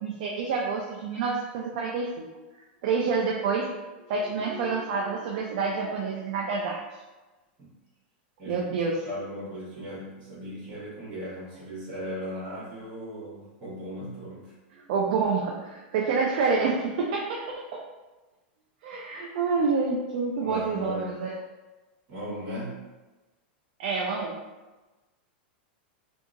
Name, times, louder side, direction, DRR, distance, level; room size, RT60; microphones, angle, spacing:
voice 1, 0.0-2.3 2.8-3.7 4.1-6.8 8.5-9.1 14.7-17.4 17.7-17.8 18.8-21.3 23.8-24.3, right 4 dB, 45° right, -2 dB, 0.3 m, -28 dB
voice 2, 8.4-14.5 20.4-21.3 22.1-22.9, equal, 25° right, -8 dB, 1.3 m, -37 dB
2.8 x 2.6 x 2.4 m, 1.1 s
supercardioid pair, 180°, 6 cm